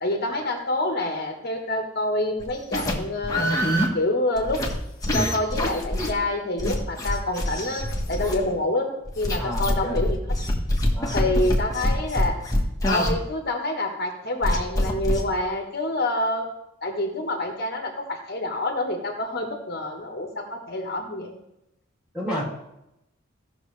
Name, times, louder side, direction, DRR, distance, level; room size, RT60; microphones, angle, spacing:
voice 1, 0.0-3.6 3.9-4.6 5.1-10.2 11.1-12.5 12.8-16.4 16.8-21.4, left 1 dB, 50° left, 2 dB, 1.3 m, -27 dB
sound 1, 2.4-3.0 3.2-3.9 4.4-4.7 5.0-6.1 6.6-8.6 9.1-13.1 14.4-15.2, left 1 dB, 20° left, 1.4 m, -24 dB
voice 2, 9.3-10.0 10.9-11.3 22.1-22.4, equal, 5° right, -5 dB, 3.0 m, -31 dB
16.0 x 6.2 x 3.3 m, 0.86 s
head